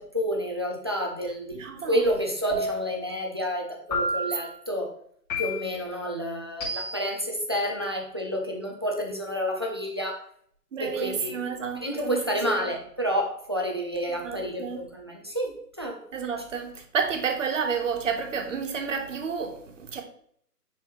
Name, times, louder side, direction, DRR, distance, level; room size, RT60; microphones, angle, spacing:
voice 1, 0.0-1.6 1.8-4.9 5.4-10.2 10.8-11.4 11.8-16.0, equal, 20° right, 0.5 m, -29 dB
voice 2, 1.5-2.0 10.7-12.3 14.1-14.8 16.1-20.0, right 6 dB, 50° right, 1.4 m, -30 dB
sound 1, 2.5-3.1 3.9-4.5 5.3-5.9 6.6-7.2, equal, 25° left, 2.8 m, -30 dB
9.7 x 4.1 x 3.3 m
figure-of-eight pair, 140°, 48 cm